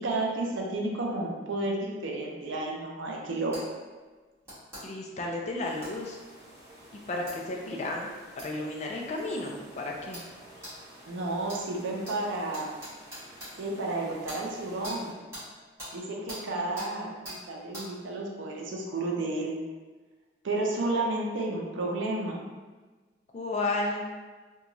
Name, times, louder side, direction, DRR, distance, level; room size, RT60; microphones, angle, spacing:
voice 1, 0.0-3.6 11.1-12.7 13.6-15.2 15.9-19.6 20.4-22.4, right 2 dB, 85° right, -1 dB, 0.5 m, -31 dB
sound 1, 3.5-3.6 4.4-4.8 5.8-5.9 7.3-7.4 8.4-8.5 9.2-9.3 10.1-10.3 10.6-10.7 11.5-11.6 12.0-12.2 12.5-13.5 14.3-14.4 14.8-15.0 15.3-15.5 15.8-15.9 16.3-16.4 16.8-16.9 17.2-17.4 17.7-17.9, equal, 15° right, 1.3 m, -41 dB
voice 2, 4.8-6.2 7.1-8.1 8.4-10.2 16.5-17.2 23.3-24.0, left 2 dB, 35° left, 0 dB, 0.3 m, -33 dB
sound 2, 5.6-15.1, right 1 dB, 40° right, 1.0 m, -52 dB
2.9 x 2.2 x 2.6 m, 1.3 s
head